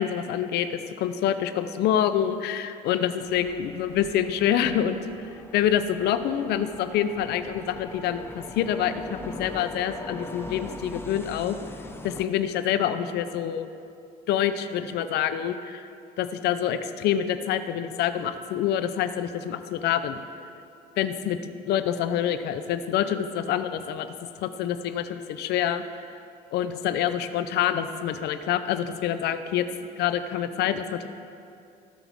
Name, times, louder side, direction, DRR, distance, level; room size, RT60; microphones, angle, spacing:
voice 1, 0.0-11.6 12.0-13.7 14.3-15.9 16.2-20.2 21.0-21.4 21.7-24.2 24.4-25.8 26.5-29.7 30.0-31.1, left 10 dB, 75° left, 10 dB, 0.6 m, -26 dB
sound 1, 3.2-12.3, left 2 dB, 15° left, 0.7 m, -42 dB
17.0 x 6.1 x 3.6 m, 2.5 s
cardioid pair, 110°, 17 cm